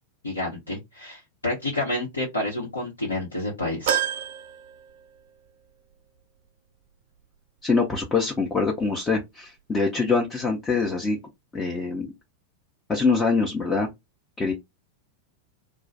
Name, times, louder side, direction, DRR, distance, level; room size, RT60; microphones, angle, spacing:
voice 1, 0.2-4.0, left 2 dB, 80° left, 1.0 m, -29 dB
sound 1, 3.9-5.5 5.9-6.0 7.2-7.3, right 9 dB, 55° right, 0.4 m, -29 dB
voice 2, 7.6-11.2 11.5-12.1 12.9-13.9 14.4-14.5, left 4 dB, 15° left, 0.7 m, -24 dB
2.3 x 2.2 x 4.0 m
figure-of-eight pair, 90°, 0 cm